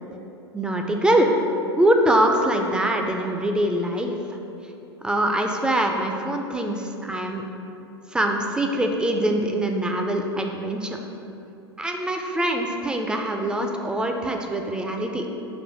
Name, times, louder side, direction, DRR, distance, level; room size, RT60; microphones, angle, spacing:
voice 1, 0.5-1.3 1.8-4.4 5.0-7.4 8.1-11.0 11.8-15.3, right 1 dB, 5° right, 3 dB, 0.3 m, -23 dB
4.3 x 2.5 x 4.8 m, 2.8 s
figure-of-eight pair, 85°, 14 cm